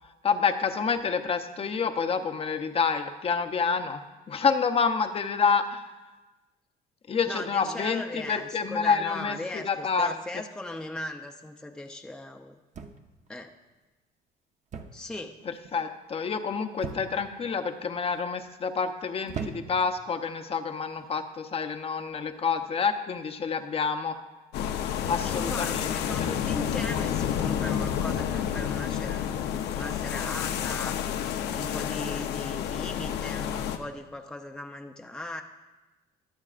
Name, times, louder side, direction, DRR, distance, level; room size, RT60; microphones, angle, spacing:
voice 1, 0.2-5.8 7.1-10.1 15.5-24.2 25.1-26.3, left 5 dB, 35° left, 7 dB, 0.8 m, -28 dB
voice 2, 7.3-12.6 13.3-13.5 14.9-15.4 25.0-29.3 29.7-30.9 31.5-35.4, left 1 dB, 5° left, 3 dB, 0.6 m, -38 dB
sound 1, 12.7-13.3 14.7-15.1 15.4-15.8 16.8-17.4 18.1-18.5 19.3-19.9 20.9-21.1, right 5 dB, 45° right, 0.9 m, -39 dB
sound 2, 24.5-33.8, left 9 dB, 80° left, 0.8 m, -30 dB
22.5 x 8.1 x 2.5 m, 1.1 s
cardioid pair, 110°, 17 cm